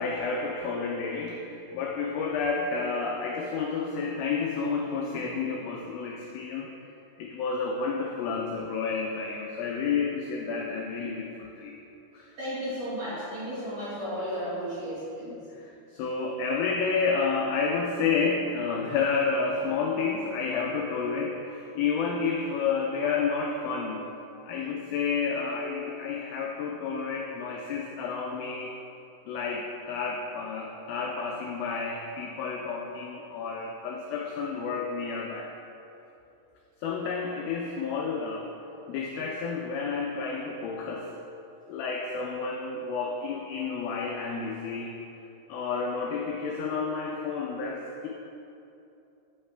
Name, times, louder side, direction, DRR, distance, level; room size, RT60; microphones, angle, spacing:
voice 1, 0.0-6.7 7.2-11.8 12.1-12.3 15.5-24.1 24.5-28.7 29.3-35.5 36.8-38.5 38.9-41.1 41.7-44.9 45.5-48.1, left 5 dB, 85° left, 0 dB, 2.1 m, -30 dB
voice 2, 12.4-15.3, equal, 55° right, -12 dB, 2.0 m, -34 dB
6.5 x 5.5 x 3.2 m, 2.8 s
omnidirectional pair, 4.6 m